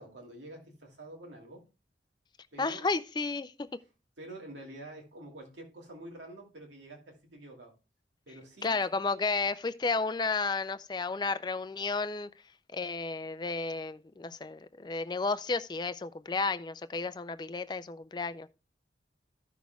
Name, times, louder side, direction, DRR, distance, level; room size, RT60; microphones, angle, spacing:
voice 1, 0.0-1.7 2.5-2.9 4.2-7.7 8.3-8.8, right 1 dB, 85° right, 2.5 m, -47 dB
voice 2, 2.6-3.7 8.6-12.3 12.7-18.5, left 4 dB, 25° left, 0.4 m, -32 dB
14.5 x 6.2 x 2.3 m
head